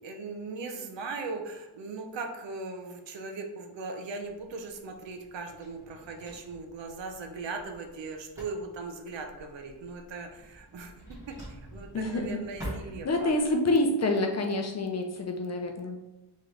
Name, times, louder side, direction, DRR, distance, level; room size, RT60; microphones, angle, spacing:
voice 1, 0.0-11.0 11.3-13.3, right 3 dB, 80° right, 5 dB, 0.7 m, -39 dB
Drawer open or close, 4.2-13.6, equal, 5° right, 1.3 m, -47 dB
voice 2, 11.9-12.4 13.0-16.0, left 2 dB, 40° left, 4 dB, 0.5 m, -27 dB
3.8 x 3.1 x 3.2 m, 1.0 s
wide cardioid pair, 160°, 44 cm